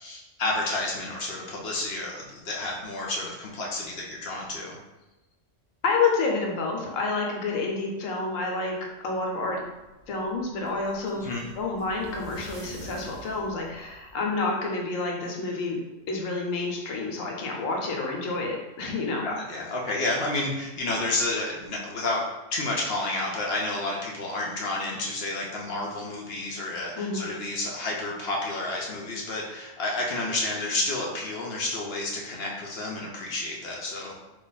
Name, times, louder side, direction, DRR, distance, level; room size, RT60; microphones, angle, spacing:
voice 1, 0.0-4.8 11.1-11.4 19.2-22.2 22.5-34.1, left 2 dB, 60° left, -2 dB, 0.7 m, -30 dB
voice 2, 5.8-8.7 9.0-9.6 10.1-15.8 16.1-19.3 27.0-27.3, left 3 dB, 80° left, 0 dB, 1.1 m, -29 dB
sound 1, 9.4-14.5, right 2 dB, 80° right, 0.9 m, -47 dB
2.9 x 2.4 x 3.9 m, 1.0 s
omnidirectional pair, 1.3 m